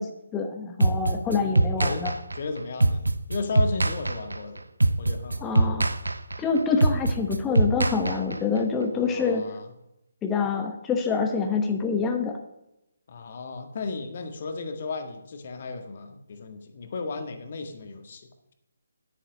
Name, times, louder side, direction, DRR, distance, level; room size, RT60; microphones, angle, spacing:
voice 1, 0.0-2.1 5.4-6.0 6.4-9.5 10.2-12.4, left 5 dB, 10° left, 4 dB, 0.9 m, -26 dB
sound 1, 0.8-8.6, right 2 dB, 75° right, 0.7 m, -24 dB
voice 2, 1.4-3.0 3.3-4.6 5.0-5.9 6.7-6.8 8.9-9.7 13.1-18.5, left 3 dB, 45° left, 7 dB, 1.6 m, -35 dB
10.0 x 8.9 x 6.3 m, 0.88 s
figure-of-eight pair, 145°, 0 cm